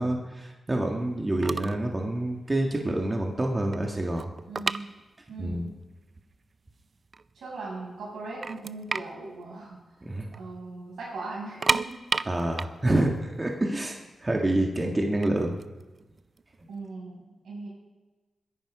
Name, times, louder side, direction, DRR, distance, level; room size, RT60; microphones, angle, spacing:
voice 1, 0.0-4.3 5.4-5.7 10.0-10.3 12.3-15.6, right 1 dB, 25° right, 1 dB, 1.9 m, -27 dB
sound 1, 1.1-1.2 1.4-1.9 2.1-2.4 2.9-3.0 3.3-5.5 5.8-5.9 6.5-6.6 7.0-7.7 8.1-8.2 8.4-10.4 10.7-10.8 11.4-14.3 15.0-16.8, right 4 dB, 45° right, 0.5 m, -31 dB
voice 2, 4.5-4.9 5.3-5.8 7.3-12.0 16.7-17.7, right 3 dB, 85° right, -3 dB, 6.7 m, -39 dB
21.5 x 11.0 x 5.0 m, 1.2 s
cardioid pair, 70°, 0 cm